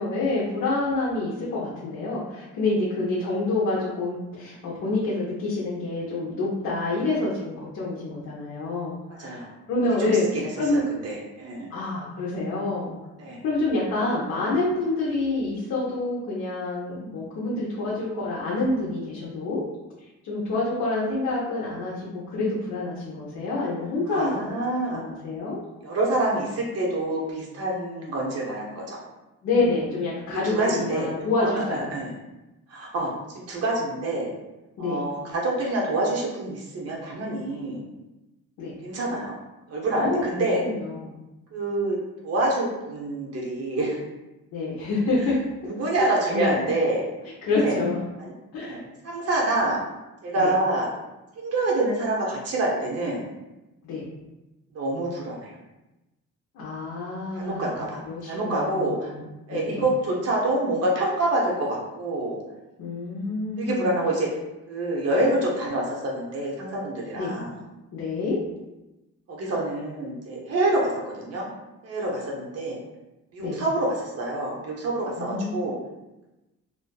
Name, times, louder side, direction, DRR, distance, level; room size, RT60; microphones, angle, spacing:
voice 1, 0.0-9.4 9.7-10.3 10.6-10.8 11.7-12.9 13.4-19.6 20.2-24.6 24.9-25.6 29.4-32.0 34.8-35.0 38.6-38.8 39.9-41.2 44.5-45.4 46.3-46.5 47.4-48.0 48.5-48.8 50.4-50.5 53.8-54.1 56.5-59.8 62.8-64.0 67.1-67.3 67.9-68.4 73.4-73.6 75.2-75.6, left 2 dB, 70° left, -6 dB, 0.7 m, -27 dB
voice 2, 9.2-9.5 10.0-11.7 13.2-13.4 24.1-25.0 25.8-29.0 30.3-31.1 31.4-32.1 32.7-34.3 34.8-37.8 38.8-39.3 39.7-40.6 41.5-42.0 42.2-44.0 45.7-47.0 47.6-47.8 48.2-48.3 48.6-49.8 50.2-50.9 51.4-53.2 54.7-55.6 57.3-59.1 59.5-62.4 63.6-64.3 64.7-67.6 69.3-71.5 71.8-72.8 73.3-75.8, right 2 dB, 55° right, -3 dB, 0.7 m, -27 dB
2.5 x 2.4 x 2.2 m, 1.0 s
cardioid pair, 90°, 30 cm